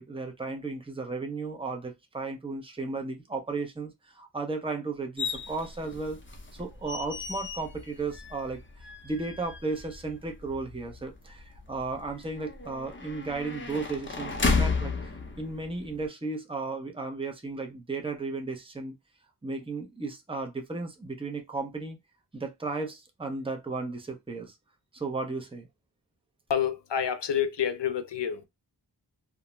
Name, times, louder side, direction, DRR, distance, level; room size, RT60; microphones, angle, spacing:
voice 1, 0.0-6.2 6.5-18.9 19.4-22.0 22.3-24.5 24.9-25.7, right 3 dB, 15° right, 0.7 m, -35 dB
sound 1, 5.2-16.1, left 4 dB, 30° left, 0.6 m, -34 dB
voice 2, 26.5-28.4, left 8 dB, 80° left, 0.6 m, -28 dB
2.4 x 2.1 x 3.0 m
wide cardioid pair, 45°, 42 cm